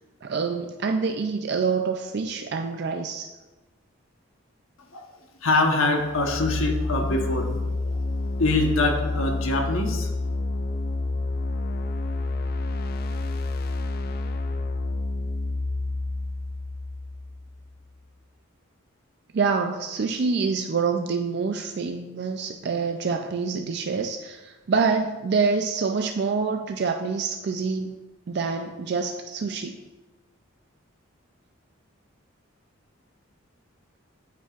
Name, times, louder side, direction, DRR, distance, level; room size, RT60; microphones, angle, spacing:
voice 1, 0.2-3.3 19.3-28.0 28.3-29.8, right 5 dB, 50° right, 4 dB, 0.4 m, -26 dB
voice 2, 5.4-8.0 8.4-10.1, left 2 dB, 80° left, 3 dB, 1.1 m, -24 dB
sound 1, 6.0-17.8, left 2 dB, 45° left, 0.4 m, -29 dB
9.0 x 8.2 x 2.4 m, 1.2 s
head